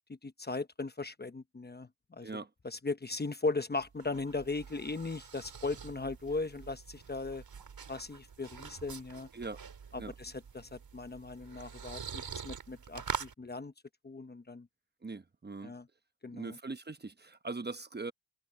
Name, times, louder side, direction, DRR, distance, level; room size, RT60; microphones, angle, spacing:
voice 1, 0.1-2.3 2.6-7.4 7.9-9.3 9.9-13.7 14.0-14.7 15.6-15.9 16.2-16.6, left 3 dB, 25° left, 1.0 m, -38 dB
sound 1, 3.8-13.3, right 6 dB, 70° right, 4.4 m, -45 dB
voice 2, 15.0-15.7 16.3-18.1, right 3 dB, 25° right, 1.0 m, -41 dB
wide cardioid pair, 110°, 37 cm